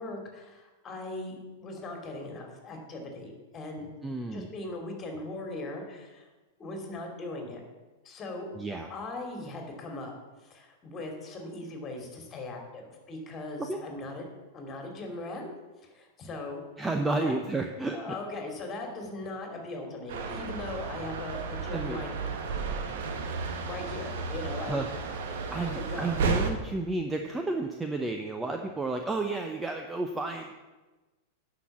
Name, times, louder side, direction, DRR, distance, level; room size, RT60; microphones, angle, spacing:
voice 1, 0.0-3.9 4.3-6.3 6.6-7.6 8.0-8.5 8.9-10.1 10.4-14.3 14.5-15.5 15.8-16.6 17.0-17.3 17.9-22.3 23.2-23.3 23.6-24.8 25.1-25.2 25.5-26.2, left 2 dB, 30° left, 3 dB, 2.7 m, -39 dB
voice 2, 4.0-4.5 8.6-8.9 13.6-13.8 16.8-18.2 21.7-22.0 24.6-24.9 25.5-30.7, right 3 dB, 10° right, 4 dB, 0.8 m, -32 dB
sound 1, 20.1-26.5, right 4 dB, 65° right, 1.4 m, -33 dB
9.8 x 6.0 x 7.2 m, 1.2 s
hypercardioid pair, 100°, 0 cm